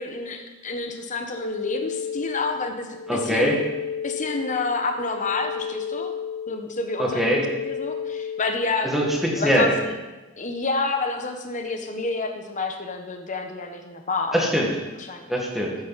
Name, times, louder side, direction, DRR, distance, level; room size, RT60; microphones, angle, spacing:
voice 1, 0.0-3.6 4.0-6.1 6.5-8.9 9.4-9.9 10.4-14.4 15.1-15.3, left 3 dB, 35° left, 5 dB, 1.1 m, -29 dB
sound 1, 1.4-8.8, left 7 dB, 75° left, 0.9 m, -33 dB
voice 2, 3.1-3.6 7.0-7.4 8.8-9.8 14.3-14.7 15.3-15.7, equal, ahead, -2 dB, 1.8 m, -22 dB
13.5 x 9.2 x 4.2 m, 1.2 s
head